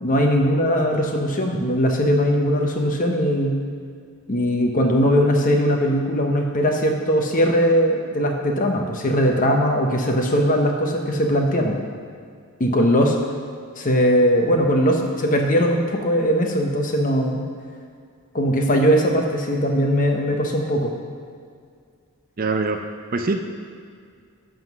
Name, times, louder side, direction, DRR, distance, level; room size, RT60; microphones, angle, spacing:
voice 1, 0.0-3.6 4.3-11.8 12.6-13.1 13.8-17.4 18.3-20.9, equal, 35° left, 2 dB, 0.9 m, -20 dB
voice 2, 22.4-22.8 23.1-23.4, right 3 dB, 40° right, 5 dB, 0.5 m, -23 dB
11.0 x 3.9 x 6.0 m, 2.2 s
head